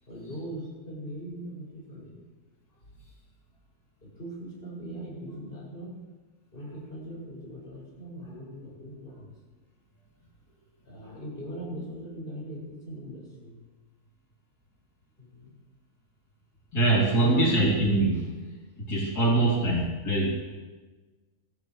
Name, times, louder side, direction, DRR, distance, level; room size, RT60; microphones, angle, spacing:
voice 1, 0.1-2.1 4.0-6.0 6.5-9.3 10.8-13.6 15.2-15.6 17.2-17.8 19.3-19.8, right 1 dB, 35° left, -6 dB, 7.1 m, -39 dB
voice 2, 16.7-18.3 18.8-20.3, right 2 dB, 90° left, -5 dB, 3.8 m, -23 dB
24.5 x 17.0 x 3.3 m, 1.3 s
omnidirectional pair, 1.6 m